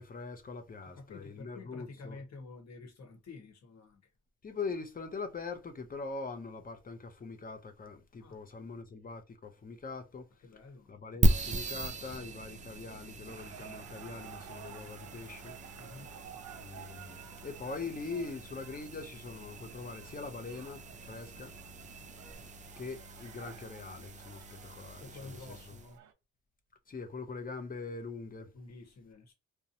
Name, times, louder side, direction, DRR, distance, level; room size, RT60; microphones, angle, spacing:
voice 1, 0.0-2.2 4.4-10.3 10.9-15.5 16.6-21.5 22.8-25.8 26.9-28.5, left 4 dB, 30° left, 0.7 m, -42 dB
voice 2, 0.8-4.0 8.2-8.4 10.4-11.3 15.7-16.1 25.0-26.0 28.5-29.3, left 3 dB, 60° left, 1.2 m, -50 dB
sound 1, 11.2-25.9, right 2 dB, 25° right, 0.4 m, -37 dB
sound 2, 13.3-26.1, right 9 dB, 75° right, 0.7 m, -53 dB
2.9 x 2.2 x 2.6 m
cardioid pair, 90°, 30 cm